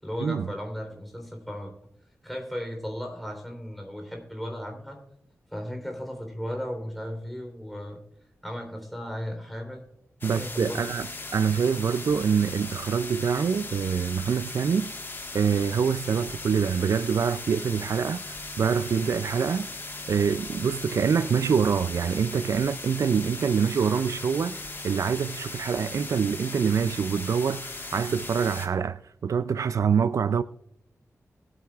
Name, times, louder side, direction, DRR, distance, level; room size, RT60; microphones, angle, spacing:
voice 1, 0.0-1.7 2.2-5.0 5.5-8.0 8.4-9.9 10.2-10.9, equal, ahead, 3.6 m, -35 dB
sound 1, 10.2-28.7, left 2 dB, 40° left, 1.5 m, -38 dB
voice 2, 10.2-11.1 11.3-14.9 15.3-19.7 20.1-30.4, right 6 dB, 75° right, 0.4 m, -25 dB
21.5 x 8.9 x 2.4 m
wide cardioid pair, 85°, 5 cm